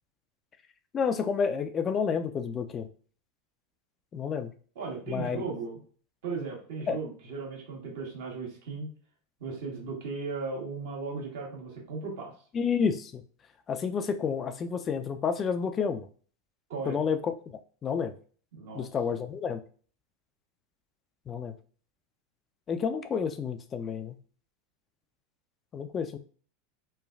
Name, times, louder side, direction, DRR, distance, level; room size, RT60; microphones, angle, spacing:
voice 1, 0.9-2.9 4.1-4.5 5.1-5.4 6.9-7.0 12.5-13.2 13.7-16.1 16.9-17.3 17.8-18.1 18.7-19.6 21.3-21.5 22.7-24.2 25.7-26.2, left 6 dB, 30° left, 9 dB, 0.3 m, -30 dB
voice 2, 4.7-5.8 6.2-8.9 9.4-12.3 16.7-17.0 18.5-18.9, right 4 dB, 70° right, -2 dB, 1.2 m, -36 dB
3.1 x 2.3 x 2.3 m, 0.43 s
hypercardioid pair, 95°, 0 cm